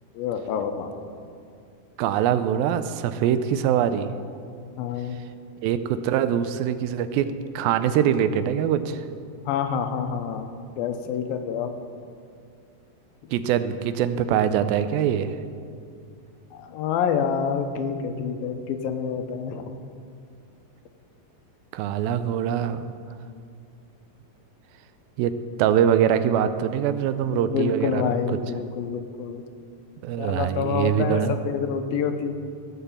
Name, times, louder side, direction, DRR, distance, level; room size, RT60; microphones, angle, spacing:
voice 1, 0.1-0.9 4.8-5.2 9.5-10.5 10.8-11.7 16.5-19.7 27.3-29.4 30.2-32.3, left 7 dB, 90° left, 7 dB, 2.6 m, -27 dB
voice 2, 2.0-4.1 5.6-7.3 7.6-9.0 13.3-15.3 21.7-22.9 25.2-25.3 25.6-28.0 30.0-31.3, right 9 dB, 85° right, 11 dB, 2.4 m, -23 dB
17.0 x 5.7 x 7.2 m, 2.3 s
omnidirectional pair, 4.1 m